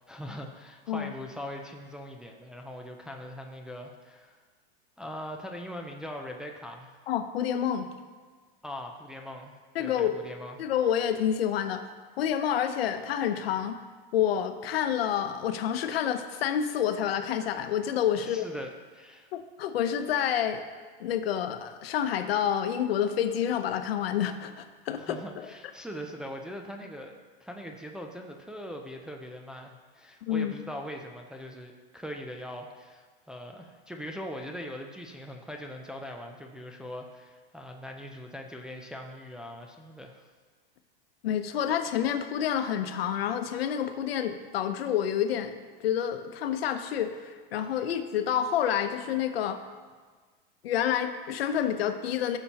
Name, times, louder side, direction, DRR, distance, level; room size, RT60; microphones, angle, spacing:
voice 1, 0.1-4.4 5.0-7.0 8.6-9.5 9.8-10.6 18.2-19.3 25.0-40.3, equal, 5° right, 1 dB, 0.4 m, -41 dB
voice 2, 7.1-7.9 9.7-10.2 10.6-11.9 12.2-13.8 14.1-18.5 19.3-20.6 21.0-25.5 30.2-30.5 41.2-49.6 50.6-52.4, left 9 dB, 80° left, 8 dB, 0.9 m, -28 dB
14.5 x 6.9 x 2.9 m, 1.5 s
supercardioid pair, 140°, 30 cm